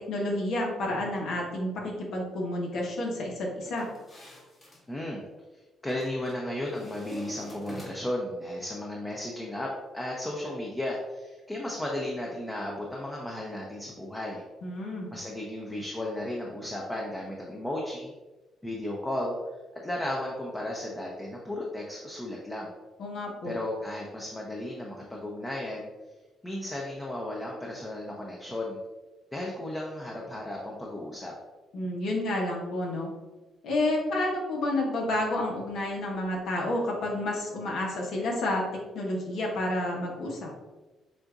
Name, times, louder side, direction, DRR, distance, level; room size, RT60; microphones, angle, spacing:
voice 1, 0.1-3.9 14.6-15.1 23.0-23.6 31.7-33.1 33.6-38.6 38.9-40.5, left 1 dB, 75° left, -2 dB, 1.3 m, -30 dB
sound 1, 3.7-4.8 5.9-6.4 6.7-8.2, equal, 30° left, 1.5 m, -46 dB
voice 2, 4.9-5.2 5.8-14.4 15.1-18.1 18.6-19.4 19.8-22.7 23.4-25.9 26.4-28.8 29.3-31.3, left 1 dB, 15° left, -2 dB, 0.7 m, -34 dB
7.5 x 2.7 x 2.5 m, 1.2 s
cardioid pair, 90°, 0 cm